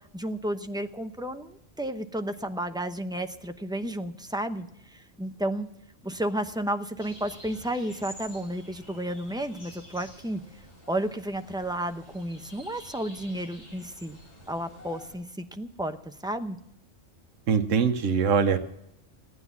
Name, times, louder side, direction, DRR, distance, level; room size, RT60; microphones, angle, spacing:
voice 1, 0.1-5.7 6.0-10.4 10.9-14.2 14.5-16.6, right 1 dB, 5° right, 7 dB, 0.6 m, -32 dB
sound 1, 7.0-15.2, equal, 35° left, 6.2 m, -49 dB
voice 2, 17.5-18.6, right 6 dB, 80° right, 7 dB, 1.3 m, -22 dB
17.0 x 9.7 x 7.1 m, 0.79 s
omnidirectional pair, 1.3 m